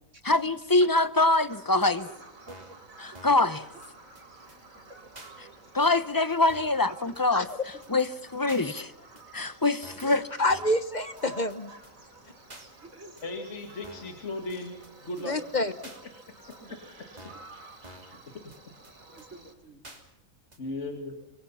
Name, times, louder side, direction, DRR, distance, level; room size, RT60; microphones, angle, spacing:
voice 1, 0.2-2.1 3.0-3.6 5.7-7.4 7.9-8.9 9.3-10.2, left 2 dB, 20° left, 14 dB, 0.7 m, -24 dB
Bird vocalization bird call bird song, 1.5-19.5, right 3 dB, 85° right, 3.6 m, -52 dB
sound 1, 1.8-1.9 2.5-2.8 3.1-3.5 3.8-3.9 4.1-4.2 4.5-4.6 5.1-5.3 5.8-5.9 6.5-6.8 7.1-7.2 7.5-7.6 7.8-7.9 8.5-8.7 9.2-9.3 9.8-10.2 10.5-10.8 11.2-11.3 11.5-11.6 11.8-11.9 12.5-12.7 13.2-13.3 13.8-14.2 14.5-14.6 14.8-14.9 15.2-15.3 15.8-16.0 16.5-16.6 17.2-17.5 17.8-18.2 18.5-18.6 18.8-18.9 19.2-19.3 19.8-20.0 20.5-20.6, right 1 dB, 30° right, 3.2 m, -48 dB
voice 2, 2.0-2.7 3.1-3.2 4.7-4.8 6.9-7.0 7.7-7.8 10.0-10.1 12.8-13.1 16.6-16.8 17.2-17.3 18.1-18.3 19.1-19.8, right 2 dB, 65° right, 2 dB, 4.3 m, -50 dB
voice 3, 10.1-11.7 15.2-15.7, left 1 dB, 35° left, 11 dB, 1.2 m, -27 dB
voice 4, 13.2-14.7 15.0-15.4 20.6-21.2, left 2 dB, 60° left, 4 dB, 2.6 m, -36 dB
25.0 x 24.5 x 5.7 m, 0.91 s
omnidirectional pair, 1.4 m